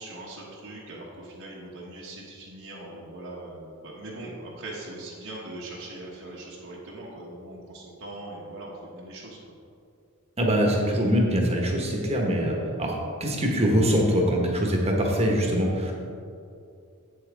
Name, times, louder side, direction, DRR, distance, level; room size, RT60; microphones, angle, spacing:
voice 1, 0.0-9.5, right 2 dB, 65° right, -5 dB, 1.3 m, -41 dB
voice 2, 10.4-12.9 13.2-15.9, equal, 30° right, 0 dB, 1.3 m, -23 dB
8.5 x 7.8 x 3.5 m, 2.5 s
head